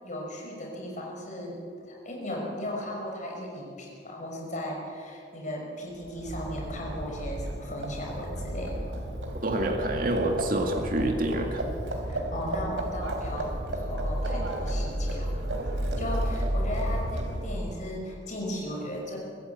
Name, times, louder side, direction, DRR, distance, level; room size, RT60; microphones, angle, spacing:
voice 1, 0.0-9.0 12.1-15.3 16.0-19.2, left 1 dB, 40° left, -1 dB, 5.3 m, -36 dB
Livestock farm animals working animals, 6.0-17.7, right 1 dB, 85° right, 3.5 m, -32 dB
voice 2, 9.4-11.7, right 1 dB, 45° right, 2 dB, 1.9 m, -27 dB
24.0 x 14.5 x 8.0 m, 2.4 s
head